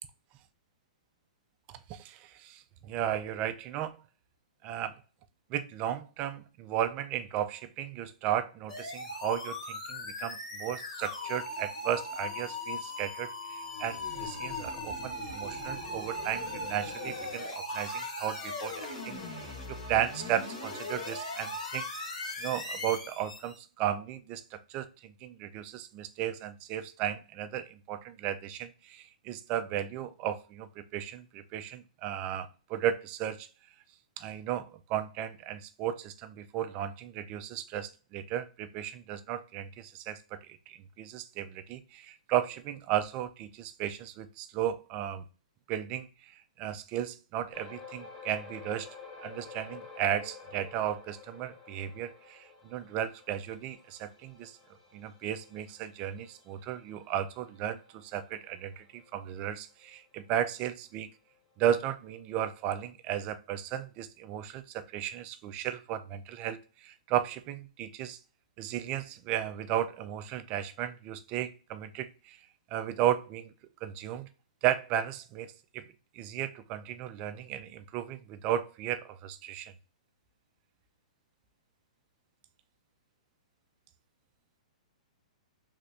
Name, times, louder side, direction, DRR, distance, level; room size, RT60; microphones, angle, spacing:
voice 1, 1.7-4.0 4.6-5.0 5.5-21.9 22.4-33.5 34.2-45.2 45.7-48.9 49.2-54.6 54.9-61.1 61.6-68.2 68.6-72.4 72.7-73.5 73.8-74.3 74.6-79.7, right 11 dB, 30° right, 11 dB, 0.4 m, -35 dB
sound 1, 8.7-23.6, left 2 dB, 65° left, 1.5 m, -39 dB
sound 2, 47.5-60.2 60.6-60.8 61.3-61.4, left 5 dB, 50° left, 1.3 m, -51 dB
3.3 x 2.6 x 3.2 m, 0.36 s
hypercardioid pair, 135°, 4 cm